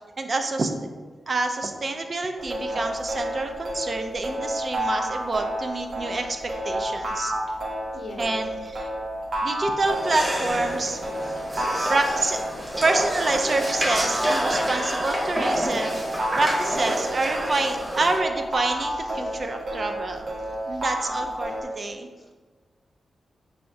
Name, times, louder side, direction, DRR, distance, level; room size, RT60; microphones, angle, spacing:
voice 1, 0.2-0.7 1.3-7.3 8.2-8.9 9.4-11.0 11.9-12.4 12.8-20.3 20.7-22.1, right 2 dB, 45° right, 5 dB, 0.4 m, -27 dB
sound 1, 2.4-21.6, right 1 dB, 70° right, 1.0 m, -30 dB
voice 2, 7.9-8.4 11.1-11.5 18.7-19.5 20.4-21.6 22.2-22.3, left 2 dB, 55° left, 1 dB, 0.8 m, -46 dB
sound 2, 9.8-18.2, equal, 15° right, 0.8 m, -28 dB
4.6 x 3.3 x 2.6 m, 1.4 s
cardioid pair, 80°, 0 cm